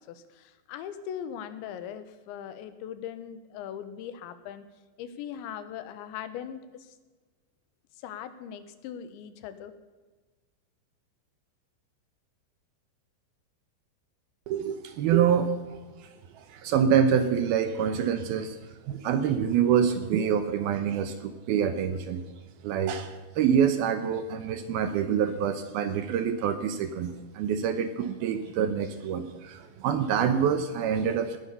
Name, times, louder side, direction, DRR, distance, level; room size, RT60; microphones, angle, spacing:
voice 1, 0.1-4.7 5.0-7.0 8.0-9.7, left 9 dB, 85° left, 12 dB, 3.4 m, -40 dB
voice 2, 14.5-16.1 16.3-18.6 18.9-22.2 22.6-31.4, right 8 dB, 75° right, 10 dB, 2.5 m, -26 dB
19.0 x 10.0 x 6.8 m, 1.3 s
omnidirectional pair, 5.1 m